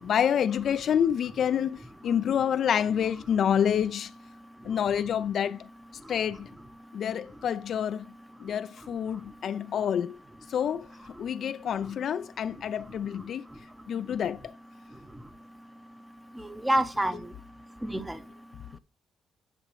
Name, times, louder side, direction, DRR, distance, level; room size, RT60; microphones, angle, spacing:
voice 1, 0.0-4.1 4.6-5.6 6.1-6.5 6.9-8.0 8.4-10.2 10.5-13.4 13.9-14.4, left 8 dB, 60° left, 0.4 m, -28 dB
voice 2, 16.4-17.3 17.8-18.2, right 1 dB, 10° right, 0.7 m, -28 dB
10.0 x 5.1 x 3.1 m
cardioid pair, 90°, 0 cm